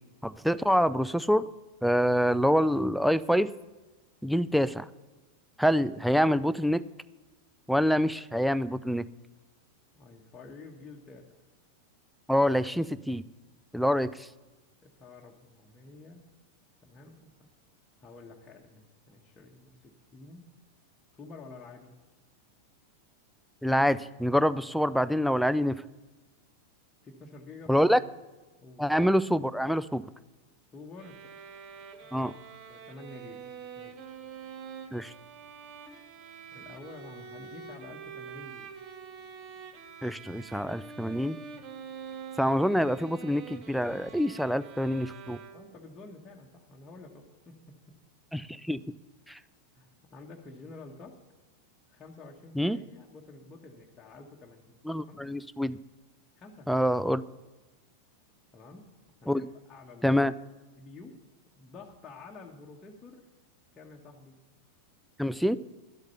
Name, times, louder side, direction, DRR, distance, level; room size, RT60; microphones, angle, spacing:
voice 1, 0.2-1.4 1.8-3.5 4.2-4.9 5.6-6.8 7.7-9.0 12.3-13.2 13.7-14.3 23.6-25.8 27.7-28.0 28.8-30.0 32.1-32.3 34.9-35.1 40.0-41.4 42.4-45.4 48.3-48.8 49.3-49.4 52.6-52.8 54.9-55.8 56.7-57.2 59.3-59.4 60.0-60.3 65.2-65.6, equal, ahead, 15 dB, 0.4 m, -26 dB
voice 2, 9.9-11.4 14.8-16.3 16.8-17.5 18.0-20.5 21.1-21.9 27.0-27.9 28.6-28.9 30.7-31.3 32.0-32.3 32.7-34.1 36.5-38.7 45.5-47.7 49.7-51.2 51.9-55.2 56.4-56.8 58.5-58.9 59.2-59.4 59.7-60.2 60.8-61.2 61.6-63.2 63.8-64.4, left 3 dB, 20° left, -2 dB, 1.3 m, -49 dB
sound 1, 31.0-45.9, right 6 dB, 35° right, 1.3 m, -46 dB
11.5 x 8.0 x 6.9 m, 1.2 s
figure-of-eight pair, 90°, 0 cm